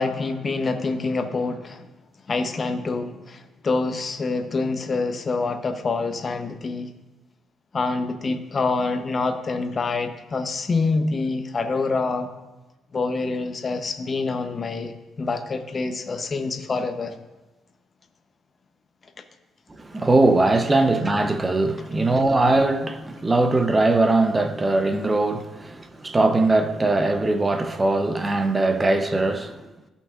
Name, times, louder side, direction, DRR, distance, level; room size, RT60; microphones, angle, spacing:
voice 1, 0.0-1.9 2.3-6.9 7.7-12.3 12.9-17.2, left 3 dB, 40° left, 0.8 m, -26 dB
voice 2, 19.8-29.6, right 2 dB, 20° right, 0.7 m, -21 dB
14.5 x 5.6 x 2.5 m
cardioid pair, 90°, 0 cm